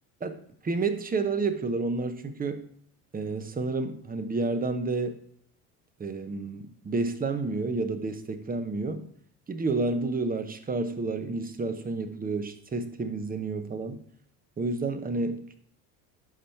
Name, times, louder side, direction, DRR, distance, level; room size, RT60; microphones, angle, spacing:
voice 1, 0.2-2.6 3.1-5.2 6.0-9.1 9.5-14.0 14.6-15.4, right 3 dB, 20° right, 9 dB, 1.0 m, -30 dB
11.0 x 4.2 x 4.5 m, 0.64 s
supercardioid pair, 90°, 41 cm